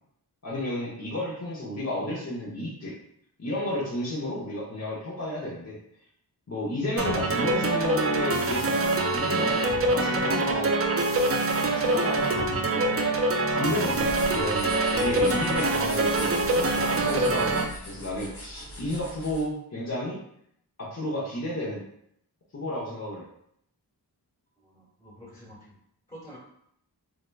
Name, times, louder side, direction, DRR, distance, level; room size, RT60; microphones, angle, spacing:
voice 1, 0.4-2.9 3.4-5.8 6.5-8.8 9.1-9.6 9.9-10.7 11.8-12.8 13.5-17.6 17.9-20.2 20.8-21.8 22.5-23.2, left 1 dB, 40° left, -7 dB, 0.9 m, -32 dB
sound 1, 7.0-17.6, right 2 dB, 35° right, 0.5 m, -25 dB
sound 2, 13.9-19.5, equal, 70° left, 1.1 m, -41 dB
voice 2, 24.6-25.7 26.1-26.4, equal, 15° left, -7 dB, 1.3 m, -47 dB
3.3 x 2.8 x 2.3 m, 0.72 s
cardioid pair, 40°, 41 cm